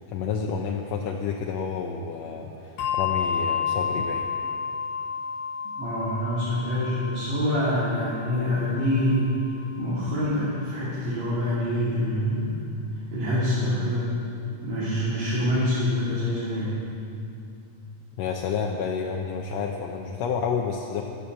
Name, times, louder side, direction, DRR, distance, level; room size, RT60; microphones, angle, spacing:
voice 1, 0.0-4.3 15.0-15.1 18.2-21.0, left 6 dB, 70° left, 1 dB, 1.7 m, -30 dB
Bell, 2.8-9.7, left 6 dB, 90° left, 2.6 m, -31 dB
voice 2, 5.7-12.6 12.9-14.1 14.6-16.8, left 1 dB, 60° right, -10 dB, 3.7 m, -26 dB
12.0 x 10.0 x 7.7 m, 2.7 s
omnidirectional pair, 3.6 m